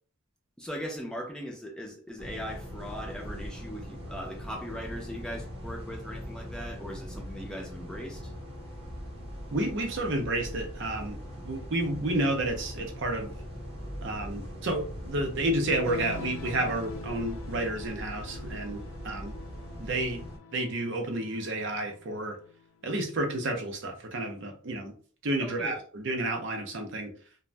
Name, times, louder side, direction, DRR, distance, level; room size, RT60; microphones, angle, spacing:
voice 1, 0.6-8.3 25.4-25.8, equal, 5° left, 0 dB, 0.4 m, -39 dB
sound 1, 2.2-20.4, equal, 25° right, 0.8 m, -41 dB
voice 2, 9.5-11.2 11.4-13.3 14.0-19.4 19.8-20.2 20.5-22.4 22.8-24.9 25.2-27.1, right 1 dB, 55° right, 4 dB, 0.5 m, -31 dB
sound 2, 15.8-22.6, left 5 dB, 70° left, 0.3 m, -45 dB
2.5 x 2.0 x 3.2 m, 0.43 s
head